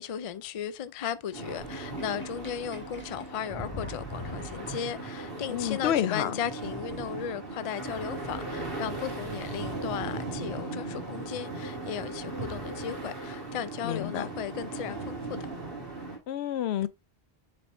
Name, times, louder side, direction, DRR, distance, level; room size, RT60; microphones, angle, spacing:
voice 1, 0.0-15.4, left 8 dB, 50° left, 0.4 m, -36 dB
sound 1, 1.3-16.2, right 3 dB, 60° right, 2.2 m, -38 dB
Sink (filling or washing), 1.6-5.4, equal, 10° left, 1.6 m, -41 dB
voice 2, 5.5-6.4 13.8-14.3 16.3-16.9, left 11 dB, 80° left, 0.8 m, -29 dB
6.8 x 5.4 x 2.5 m
omnidirectional pair, 1.1 m